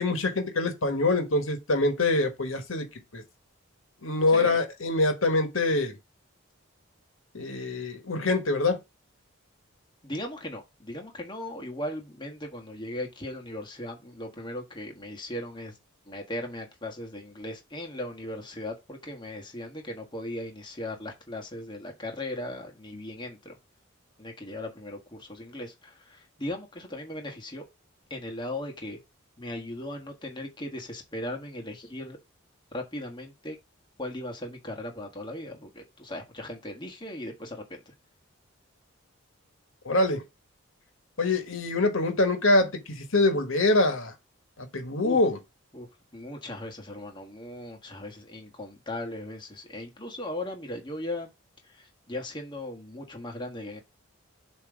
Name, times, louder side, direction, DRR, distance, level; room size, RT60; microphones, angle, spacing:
voice 1, 0.0-2.9 3.1-3.2 4.0-5.9 7.3-8.8 39.8-40.2 41.2-44.1 44.6-45.4, left 2 dB, 75° left, 1.5 m, -24 dB
voice 2, 4.3-4.6 10.0-15.7 16.1-23.6 24.2-27.7 28.1-29.0 29.4-32.2 32.7-33.6 34.0-37.9 45.0-45.2 45.7-45.9 46.1-51.3 51.6-53.8, left 1 dB, 20° left, 1.4 m, -38 dB
7.4 x 3.1 x 5.0 m
head